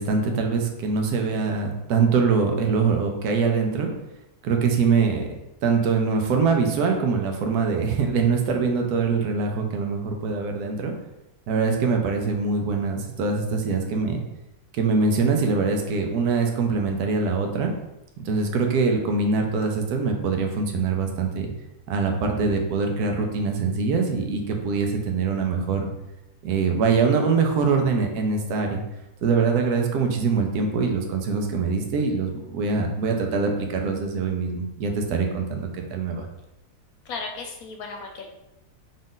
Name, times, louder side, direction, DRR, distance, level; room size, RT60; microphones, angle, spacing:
voice 1, 0.0-3.9 4.4-5.3 5.6-10.9 11.5-14.2 14.7-17.7 18.2-21.5 21.9-25.9 26.4-28.8 29.2-36.3, right 4 dB, 80° right, 3 dB, 1.2 m, -23 dB
voice 2, 37.1-38.3, left 4 dB, 75° left, 2 dB, 1.0 m, -35 dB
3.9 x 2.5 x 3.7 m, 0.91 s
omnidirectional pair, 1.6 m